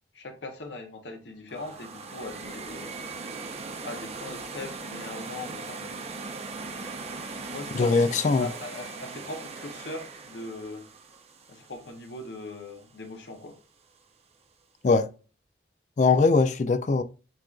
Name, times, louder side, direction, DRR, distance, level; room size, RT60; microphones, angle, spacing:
voice 1, 0.1-2.9 3.8-6.2 7.5-10.9 11.5-13.6, left 2 dB, 80° left, 0.8 m, -40 dB
sound 1, 1.5-12.5, right 4 dB, 35° right, 0.6 m, -39 dB
voice 2, 7.7-8.5 14.8-15.1 16.0-17.0, left 4 dB, 40° left, 0.4 m, -21 dB
7.5 x 2.5 x 2.3 m
head